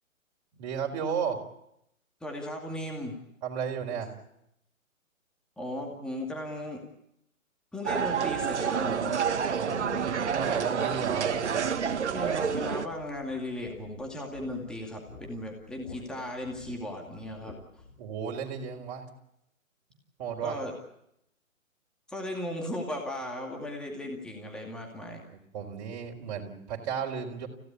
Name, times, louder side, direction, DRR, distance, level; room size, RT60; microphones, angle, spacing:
voice 1, 0.6-1.4 3.4-4.1 9.6-11.3 18.0-19.1 20.2-20.6 25.5-27.5, right 7 dB, 30° right, 1 dB, 4.3 m, -34 dB
voice 2, 2.2-3.2 5.6-6.8 7.7-9.2 12.1-17.5 20.4-20.7 22.1-25.2, left 1 dB, ahead, 1 dB, 2.3 m, -36 dB
sound 1, 7.8-12.9, right 7 dB, 55° right, 1.6 m, -28 dB
sound 2, 10.7-18.0, left 3 dB, 55° left, 6.5 m, -51 dB
30.0 x 16.5 x 8.4 m, 0.81 s
figure-of-eight pair, 135°, 41 cm